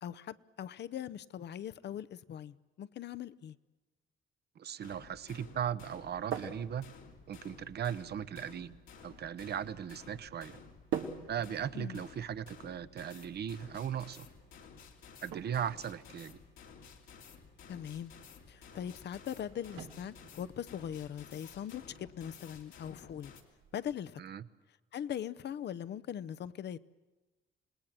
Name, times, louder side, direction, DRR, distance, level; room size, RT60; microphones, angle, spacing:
voice 1, 0.0-3.6 11.7-12.0 17.7-18.1 18.5-23.3 23.7-24.2 24.9-26.8, left 9 dB, 60° left, 0.7 m, -41 dB
voice 2, 4.6-6.9 7.3-8.8 9.0-10.6 11.3-14.3 15.2-16.4 24.2-24.4, right 9 dB, 55° right, 0.9 m, -38 dB
sound 1, 4.8-23.4, left 6 dB, 85° left, 2.7 m, -55 dB
sound 2, 5.9-23.9, right 8 dB, 90° right, 1.4 m, -48 dB
27.5 x 19.0 x 7.5 m
cardioid pair, 90°, 20 cm